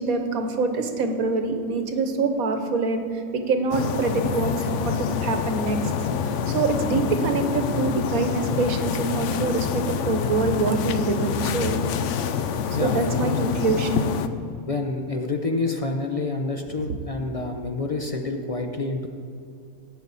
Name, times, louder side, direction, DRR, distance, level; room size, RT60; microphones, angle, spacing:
voice 1, 0.0-5.8 6.2-11.8 12.8-14.1, right 3 dB, 70° right, 6 dB, 1.4 m, -25 dB
sound 1, 3.7-14.3, left 7 dB, 65° left, 0.8 m, -26 dB
voice 2, 12.7-13.5 14.7-19.1, left 3 dB, 45° left, 3 dB, 0.4 m, -28 dB
16.0 x 8.9 x 4.1 m, 2.5 s
omnidirectional pair, 1.6 m